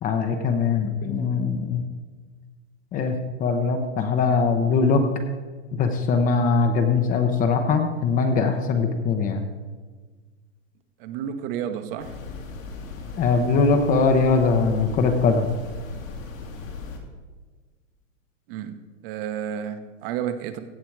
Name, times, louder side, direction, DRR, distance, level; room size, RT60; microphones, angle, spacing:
voice 1, 0.0-1.8 2.9-3.1 3.4-5.0 5.7-9.4 13.2-15.5, left 4 dB, 20° left, 6 dB, 0.8 m, -21 dB
voice 2, 11.0-12.1 18.5-18.8 19.0-20.6, right 9 dB, 45° right, 10 dB, 1.1 m, -31 dB
sound 1, 12.0-17.0, left 4 dB, 80° left, 2.6 m, -37 dB
16.0 x 7.4 x 4.7 m, 1.4 s
hypercardioid pair, 140°, 39 cm